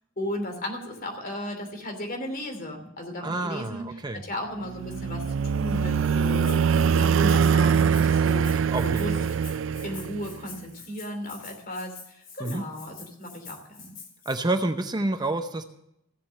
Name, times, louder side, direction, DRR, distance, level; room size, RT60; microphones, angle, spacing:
voice 1, 0.2-6.6 6.9-9.1 9.8-13.9, left 1 dB, 45° left, 3 dB, 2.9 m, -35 dB
voice 2, 3.2-4.2 8.7-9.3 12.4-12.6 14.3-15.6, right 2 dB, 20° right, 7 dB, 0.6 m, -28 dB
sound 1, 4.6-10.4, right 6 dB, 70° right, 0.4 m, -23 dB
Rattle (instrument), 6.4-14.4, left 5 dB, 85° left, 5.9 m, -46 dB
15.5 x 7.5 x 7.5 m, 0.79 s
head